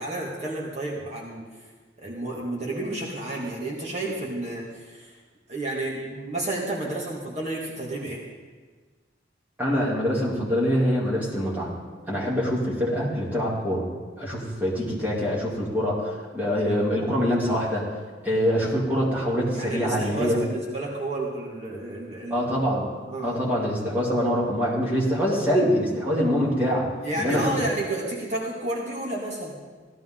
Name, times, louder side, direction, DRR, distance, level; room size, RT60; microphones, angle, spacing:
voice 1, 0.0-1.4 2.0-5.2 5.5-8.2 19.5-22.4 23.1-23.4 27.0-29.6, right 1 dB, 35° right, -4 dB, 2.1 m, -31 dB
voice 2, 9.6-11.7 12.1-13.9 14.2-17.8 18.2-20.4 22.3-22.9 23.2-26.9 27.2-27.5, equal, 10° right, -6 dB, 2.9 m, -24 dB
17.0 x 12.5 x 3.9 m, 1.4 s
head